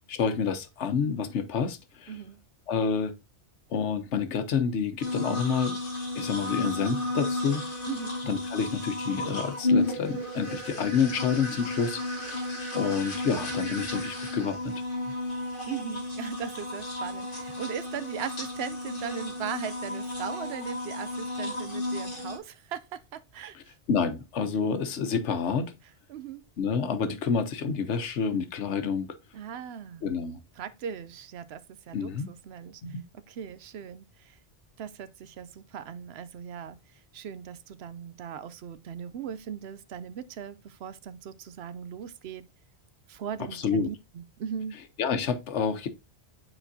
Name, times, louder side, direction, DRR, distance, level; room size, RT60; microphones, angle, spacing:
voice 1, 0.1-2.1 2.7-3.1 3.7-5.8 6.1-7.6 8.2-12.4 12.7-14.7 23.5-23.6 23.9-25.7 26.6-29.1 30.0-30.4 31.9-32.3 32.8-33.0 43.5-43.9 45.0-45.9, left 6 dB, 90° left, 1.2 m, -28 dB
voice 2, 2.1-2.4 7.9-8.2 15.7-23.7 26.1-26.5 29.3-30.1 30.6-32.8 33.3-34.4 34.8-36.8 37.1-42.5 43.1-44.7, right 8 dB, 70° right, 0.8 m, -38 dB
sound 1, 5.0-22.4, left 2 dB, 50° left, 1.8 m, -33 dB
9.0 x 4.3 x 2.6 m
omnidirectional pair, 1.1 m